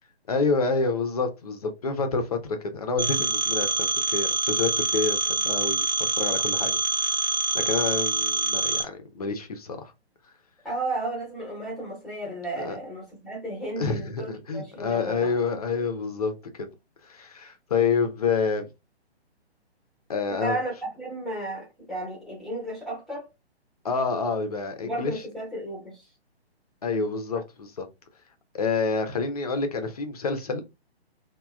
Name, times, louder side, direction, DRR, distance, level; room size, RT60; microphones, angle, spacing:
voice 1, 0.3-7.2 7.5-9.9 12.6-12.8 13.8-16.3 16.6-16.7 17.1-18.7 20.1-20.6 23.8-25.1 26.8-27.9 28.5-30.6, left 4 dB, 35° left, 0.5 m, -28 dB
Telephone, 3.0-8.8, right 3 dB, 45° right, 0.6 m, -25 dB
voice 2, 10.6-15.3 20.3-23.3 24.8-26.0, right 1 dB, ahead, 0.7 m, -33 dB
3.0 x 2.1 x 2.3 m
figure-of-eight pair, 135°, 33 cm